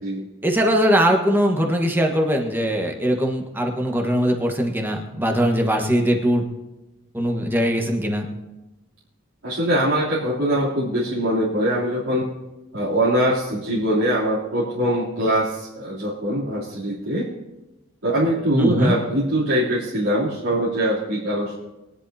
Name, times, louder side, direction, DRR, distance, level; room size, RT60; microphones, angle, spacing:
voice 1, 0.4-6.4 7.1-8.3 18.5-18.9, equal, 10° right, 2 dB, 1.3 m, -21 dB
voice 2, 9.4-12.3 12.7-17.2 18.0-21.6, equal, 80° right, -10 dB, 3.1 m, -22 dB
22.5 x 10.5 x 2.8 m, 1.0 s
head